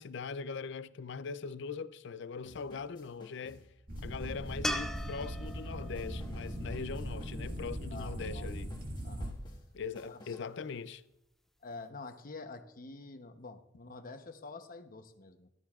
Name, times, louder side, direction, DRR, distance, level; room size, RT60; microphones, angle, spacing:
voice 1, 0.0-3.7 4.0-8.7 9.7-11.0, left 5 dB, 65° left, 0.5 m, -41 dB
sound 1, 2.4-10.6, left 1 dB, 25° left, 1.7 m, -57 dB
sound 2, 3.9-9.3, equal, 45° right, 1.9 m, -39 dB
sound 3, 4.6-7.9 11.1-11.2, equal, ahead, 0.4 m, -40 dB
voice 2, 7.9-8.5 9.0-9.4 10.1-10.2 11.6-15.5, left 3 dB, 45° left, 0.9 m, -47 dB
14.5 x 12.5 x 2.4 m
head